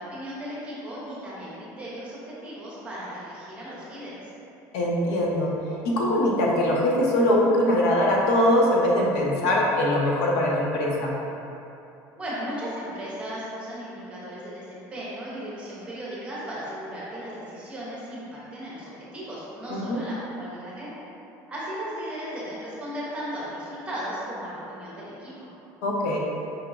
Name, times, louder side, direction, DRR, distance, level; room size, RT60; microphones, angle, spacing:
voice 1, 0.0-4.3 12.2-20.9 21.5-25.5, equal, 15° right, -8 dB, 0.8 m, -36 dB
voice 2, 4.7-5.5 5.8-11.1 19.7-20.0 25.8-26.2, left 1 dB, 90° left, -3 dB, 0.7 m, -22 dB
4.7 x 2.9 x 2.4 m, 2.8 s
cardioid pair, 170°, 8 cm